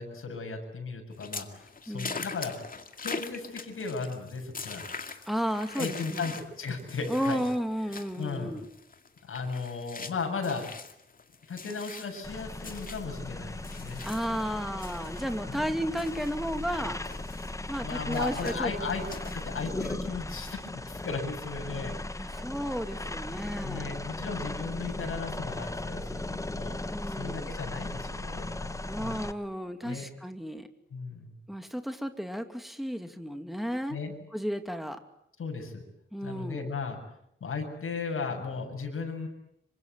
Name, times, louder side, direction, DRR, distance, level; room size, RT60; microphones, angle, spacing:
voice 1, 0.0-2.7 3.0-4.8 5.7-7.4 7.9-8.5 9.2-10.7 11.5-14.0 15.5-15.6 17.8-19.0 19.3-22.5 23.6-29.2 29.8-30.1 30.9-31.4 33.9-34.1 35.4-35.8 36.2-37.0 37.4-39.3, left 4 dB, 75° left, 2 dB, 7.8 m, -36 dB
sound 1, 1.1-14.5 14.8-19.9, left 4 dB, 40° left, 2.2 m, -43 dB
voice 2, 1.9-2.2 5.3-6.3 7.1-8.6 14.0-17.0 17.7-18.7 22.2-23.9 26.9-27.5 28.9-30.7 31.5-34.0 34.3-35.0 36.1-36.7, equal, ahead, 7 dB, 2.6 m, -33 dB
sound 2, 12.2-29.3, left 2 dB, 15° left, 1.2 m, -37 dB
27.0 x 25.0 x 8.3 m, 0.76 s
wide cardioid pair, 130°, 21 cm